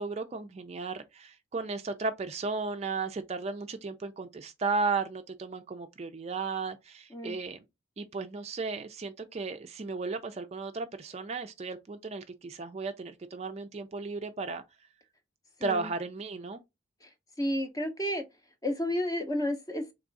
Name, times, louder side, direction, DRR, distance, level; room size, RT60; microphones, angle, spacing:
voice 1, 0.0-7.6 8.0-14.6 15.6-16.6, right 4 dB, 35° right, 0.4 m, -35 dB
voice 2, 17.4-18.2 18.6-19.9, left 1 dB, 20° left, 0.6 m, -31 dB
3.5 x 3.2 x 3.9 m
head